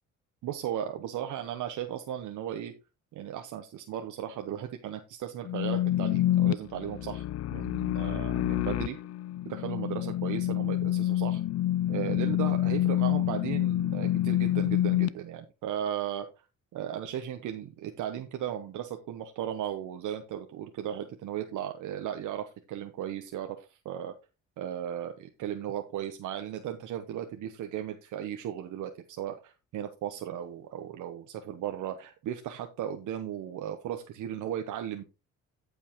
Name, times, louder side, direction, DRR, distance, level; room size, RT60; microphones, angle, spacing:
voice 1, 0.4-2.7 3.1-7.2 7.5-9.0 9.4-11.4 11.9-16.3 16.7-24.1 24.6-35.0, right 10 dB, 80° right, 6 dB, 1.0 m, -36 dB
sound 1, 5.5-15.1, left 13 dB, 55° left, 0.4 m, -27 dB
15.0 x 5.4 x 3.0 m, 0.29 s
cardioid pair, 90°, 30 cm